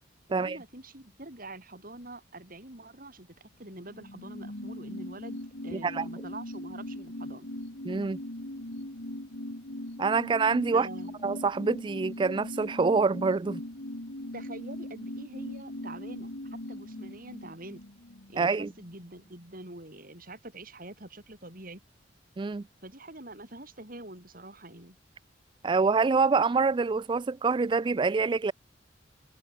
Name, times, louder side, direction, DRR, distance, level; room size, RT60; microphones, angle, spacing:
voice 1, 0.3-7.5 10.7-11.2 14.3-17.8 18.3-21.8 22.8-25.0, right 2 dB, 50° right, 7.7 m, -45 dB
sound 1, 3.9-18.9 19.2-19.3, left 1 dB, 70° left, 3.0 m, -40 dB
voice 2, 5.7-6.1 7.8-8.2 10.0-10.9 11.2-13.6 18.4-18.7 22.4-22.6 25.6-28.5, right 4 dB, 25° right, 0.3 m, -26 dB
head